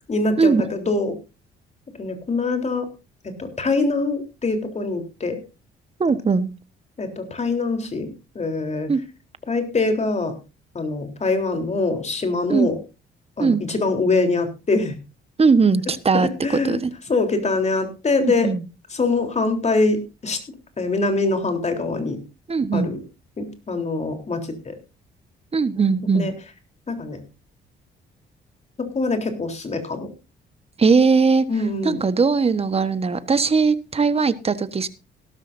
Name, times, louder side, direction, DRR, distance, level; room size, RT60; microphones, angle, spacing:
voice 1, 0.1-1.2 2.0-2.9 3.4-5.4 7.0-8.1 8.4-8.9 9.5-10.3 10.7-12.8 13.4-15.0 16.4-16.8 17.1-18.5 18.9-20.4 20.8-22.2 22.7-23.0 23.4-24.7 26.1-26.3 26.9-27.2 28.8-30.1 31.5-32.0, left 3 dB, 35° left, 3.7 m, -23 dB
voice 2, 6.0-6.5 8.9-9.0 12.5-12.7 13.4-13.6 15.4-16.9 18.2-18.6 22.5-22.9 25.5-26.3 30.8-31.5 31.8-34.9, right 4 dB, 30° right, 1.3 m, -19 dB
17.0 x 13.0 x 2.7 m
cardioid pair, 90°, 20 cm